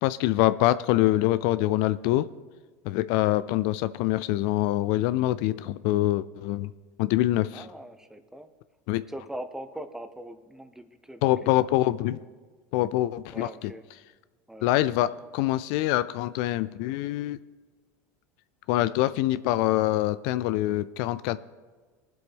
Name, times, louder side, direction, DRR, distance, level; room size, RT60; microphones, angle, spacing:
voice 1, 0.0-2.3 2.9-6.7 7.0-7.6 8.9-9.0 11.2-12.2 12.7-13.5 14.6-17.4 18.7-21.4, left 15 dB, 65° left, 15 dB, 0.4 m, -25 dB
voice 2, 7.5-8.5 8.9-11.5 13.3-13.8 14.5-14.9, right 1 dB, 5° right, 9 dB, 1.0 m, -41 dB
20.5 x 7.7 x 3.6 m, 1.4 s
supercardioid pair, 100°, 8 cm